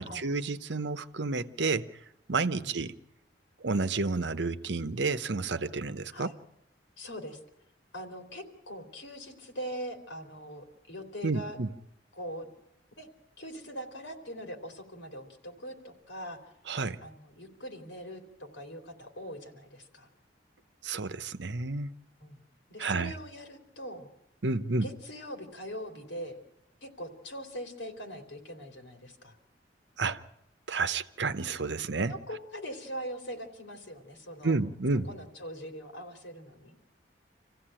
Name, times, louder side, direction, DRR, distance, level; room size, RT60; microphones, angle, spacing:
voice 1, 0.0-1.9 2.3-2.9 3.6-6.3 11.2-11.7 16.7-17.0 20.8-21.9 22.8-23.1 24.4-24.9 30.0-30.2 30.7-32.2 34.4-35.1, right 3 dB, 75° right, 0.9 m, -30 dB
voice 2, 7.0-7.4 7.9-11.6 12.1-12.5 12.9-13.1 13.4-16.4 17.0-20.1 22.2-24.1 24.7-26.4 26.8-29.4 32.1-34.6 35.1-36.7, equal, 85° left, 3.3 m, -42 dB
26.5 x 15.5 x 8.9 m
head